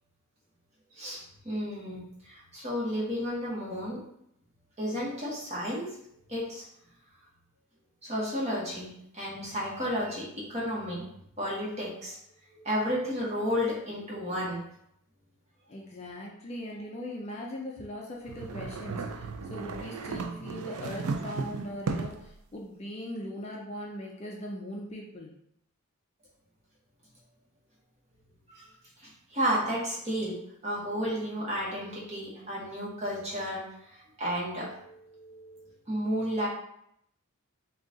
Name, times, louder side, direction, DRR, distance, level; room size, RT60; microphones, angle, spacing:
voice 1, 0.9-4.0 4.8-5.9 6.3-6.6 8.0-11.1 11.4-12.2 12.5-14.6 28.5-28.7 29.0-30.3 30.6-36.5, equal, 30° right, -5 dB, 1.1 m, -32 dB
voice 2, 15.7-25.3, left 1 dB, 30° left, -1 dB, 0.4 m, -40 dB
sound 1, 18.3-22.3, right 4 dB, 90° right, 0.4 m, -35 dB
3.8 x 2.3 x 3.7 m, 0.74 s
head